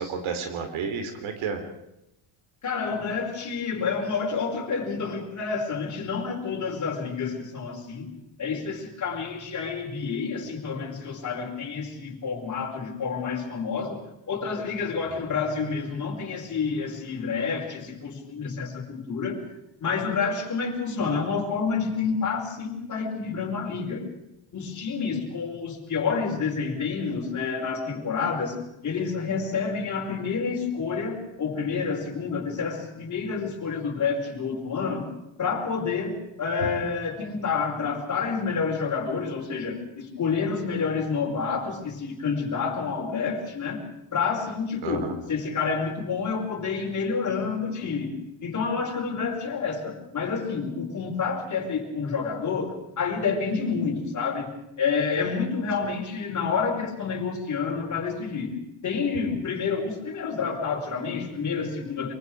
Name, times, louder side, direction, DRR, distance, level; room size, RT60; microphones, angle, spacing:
voice 1, 0.0-1.6 15.1-15.2 44.8-45.1 55.8-55.9, right 6 dB, 80° right, 6 dB, 3.5 m, -31 dB
voice 2, 2.6-8.1 8.4-19.4 19.8-24.1 24.5-35.1 35.4-43.8 44.1-48.1 48.4-58.6 58.8-62.1, left 5 dB, 40° left, 0 dB, 5.0 m, -29 dB
24.0 x 23.5 x 4.9 m, 0.87 s
cardioid pair, 140°, 47 cm